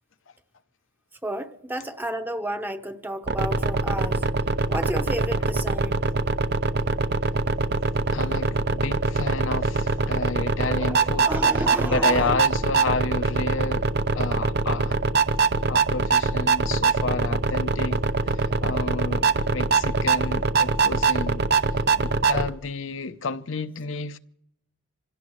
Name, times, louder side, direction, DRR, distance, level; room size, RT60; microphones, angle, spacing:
voice 1, 1.2-4.3 4.7-6.1 10.6-12.3, right 1 dB, 10° right, 0.9 m, -32 dB
sound 1, 3.3-22.5, right 3 dB, 50° right, 0.7 m, -23 dB
voice 2, 8.1-11.3 11.8-15.0 15.7-21.4 22.0-24.2, left 3 dB, 65° left, 0.7 m, -31 dB
26.5 x 17.0 x 3.1 m
head